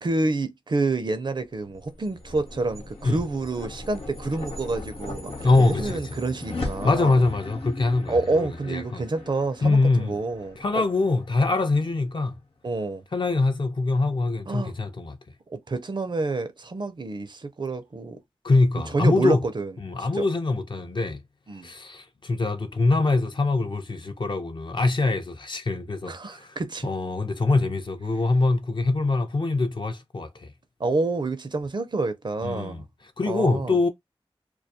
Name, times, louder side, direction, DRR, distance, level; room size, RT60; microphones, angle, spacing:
voice 1, 0.0-7.2 8.1-10.8 12.6-13.0 14.5-14.7 15.5-18.2 18.9-19.7 20.0-20.3 21.5-21.7 26.1-26.9 30.8-32.9 33.3-33.7, right 3 dB, 50° right, 0.4 m, -28 dB
sound 1, 1.6-12.1, left 2 dB, 75° left, 0.8 m, -38 dB
voice 2, 5.4-6.0 6.8-9.0 9.6-10.2 10.6-12.3 13.1-15.2 18.4-19.4 19.8-21.2 21.6-26.6 26.8-30.5 32.4-32.8 33.2-33.9, left 3 dB, 55° left, 0.5 m, -24 dB
2.2 x 2.2 x 2.7 m
cardioid pair, 45°, 10 cm